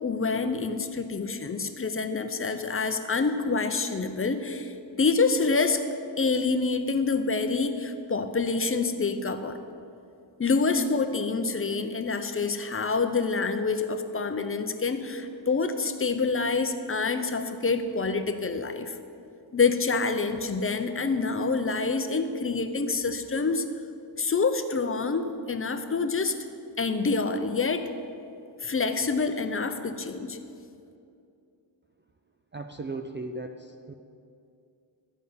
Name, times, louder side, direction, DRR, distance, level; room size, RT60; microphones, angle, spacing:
voice 1, 0.0-5.8 6.2-9.6 10.4-19.0 19.5-23.7 24.2-26.4 26.8-27.9 28.6-30.4, left 4 dB, 30° left, 8 dB, 0.6 m, -27 dB
voice 2, 32.5-33.9, right 2 dB, 25° right, 6 dB, 0.3 m, -37 dB
14.0 x 5.4 x 9.3 m, 2.5 s
wide cardioid pair, 160°, 48 cm